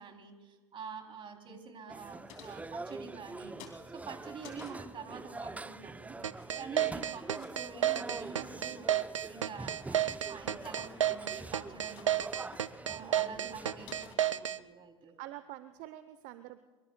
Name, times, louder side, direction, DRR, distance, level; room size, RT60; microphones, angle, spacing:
voice 1, 0.0-3.6 3.9-6.2 6.6-8.9 9.2-12.1 12.8-15.2, right 5 dB, 35° right, 4 dB, 3.2 m, -47 dB
sound 1, 1.9-14.1, right 2 dB, 10° right, 0.6 m, -45 dB
sound 2, 2.3-3.3 3.6-4.9 6.2-6.8 7.2-7.5 7.8-8.5 9.0-9.3 9.7-10.1 10.5-11.3 11.5-12.3 12.5-12.6 13.2-13.3 13.5-13.6 13.9-14.8, left 8 dB, 55° left, 2.8 m, -55 dB
sound 3, 6.2-14.6, right 11 dB, 85° right, 0.5 m, -31 dB
voice 2, 13.0-13.3 15.2-16.6, right 14 dB, 55° right, 12 dB, 0.8 m, -47 dB
24.0 x 23.5 x 2.3 m, 1.4 s
hypercardioid pair, 80°, 15 cm